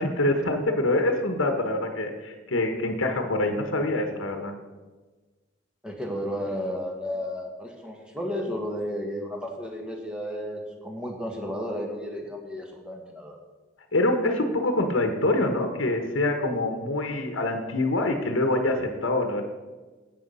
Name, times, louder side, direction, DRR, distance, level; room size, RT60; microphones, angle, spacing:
voice 1, 0.0-4.5 13.9-19.4, left 2 dB, 75° left, 5 dB, 1.2 m, -25 dB
voice 2, 5.8-13.4, equal, 5° right, 1 dB, 1.6 m, -33 dB
10.0 x 8.4 x 5.5 m, 1.3 s
head